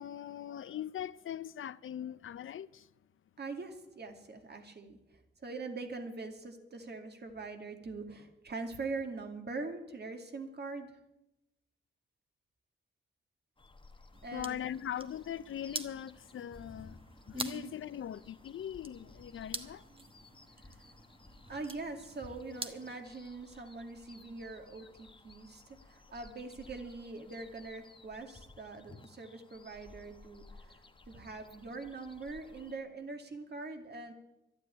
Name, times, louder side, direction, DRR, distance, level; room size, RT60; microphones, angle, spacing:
voice 1, 0.0-2.9 14.3-17.0 17.3-19.8, left 10 dB, 75° left, 0.6 m, -41 dB
voice 2, 3.4-5.0 5.4-11.0 14.2-14.6 17.3-17.7 20.6-20.8 21.5-34.1, right 3 dB, 50° right, 2.4 m, -43 dB
sound 1, 13.6-32.8, left 2 dB, 25° left, 1.2 m, -57 dB
sound 2, 14.1-23.0, right 2 dB, 25° right, 1.2 m, -47 dB
12.0 x 10.5 x 9.8 m
cardioid pair, 85°, 21 cm